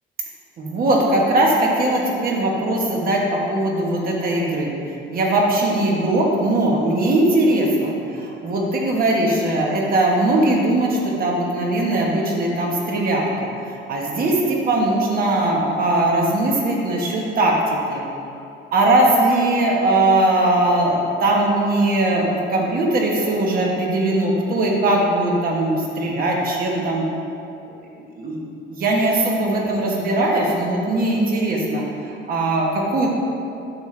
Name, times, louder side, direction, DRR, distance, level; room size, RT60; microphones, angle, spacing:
voice 1, 0.6-4.7 5.1-13.3 13.9-17.5 17.9-18.0 18.7-27.1 28.0-28.4 28.7-31.8 32.3-33.1, right 1 dB, 45° right, -1 dB, 1.3 m, -20 dB
8.9 x 7.1 x 3.3 m, 2.7 s
cardioid pair, 170°, 21 cm